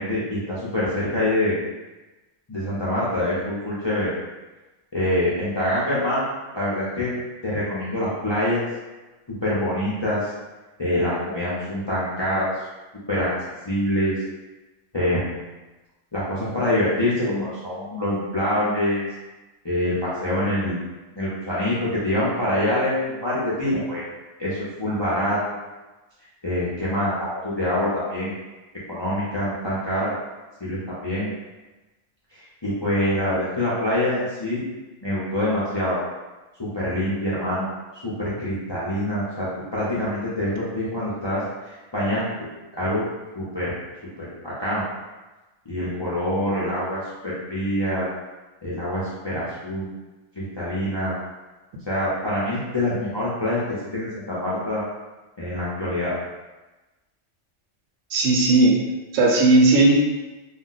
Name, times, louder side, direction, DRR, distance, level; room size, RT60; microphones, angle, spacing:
voice 1, 0.0-1.6 2.5-4.1 4.9-7.1 7.4-8.6 9.3-10.3 10.8-12.5 13.1-13.3 13.6-14.2 14.9-15.3 16.1-19.1 19.6-20.9 21.2-24.1 24.4-25.7 26.4-28.3 28.9-30.1 30.6-31.3 32.3-34.6 35.0-36.0 36.6-37.7 38.0-42.3 42.7-43.1 43.3-43.7 44.2-44.8 45.7-48.1 48.6-49.9 50.3-51.1 51.9-54.8 55.4-56.2, left 1 dB, 35° left, -9 dB, 0.4 m, -25 dB
voice 2, 58.1-58.7 59.1-59.9, right 2 dB, 85° right, -1 dB, 1.0 m, -16 dB
2.4 x 2.1 x 3.8 m, 1.1 s
omnidirectional pair, 1.3 m